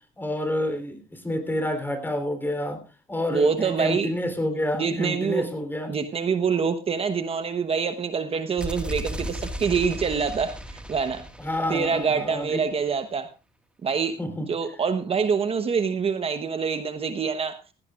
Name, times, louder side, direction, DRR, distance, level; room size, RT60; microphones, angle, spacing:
voice 1, 0.2-2.8 3.1-6.0 11.4-12.6 14.2-14.5, left 1 dB, 10° left, 8 dB, 3.6 m, -28 dB
voice 2, 3.3-4.1 4.7-5.4 5.9-11.2 11.7-13.3 13.8-14.2 14.5-17.6, right 6 dB, 35° right, 9 dB, 1.1 m, -25 dB
sound 1, 8.6-12.4, equal, 5° right, 1.8 m, -35 dB
17.5 x 16.0 x 2.5 m, 0.30 s
cardioid pair, 110°, 17 cm